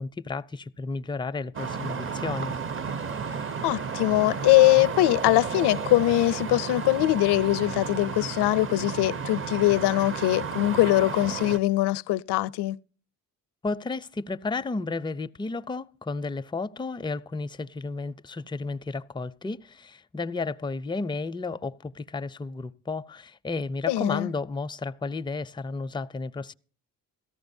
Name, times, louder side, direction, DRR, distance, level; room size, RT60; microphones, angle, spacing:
voice 1, 0.0-2.5 13.6-26.5, left 3 dB, 10° left, 0.5 m, -32 dB
sound 1, 1.5-11.6, right 6 dB, 30° right, 0.6 m, -33 dB
voice 2, 3.6-12.8 23.9-24.3, left 17 dB, 70° left, 0.6 m, -22 dB
17.5 x 14.0 x 2.6 m
supercardioid pair, 70°, 43 cm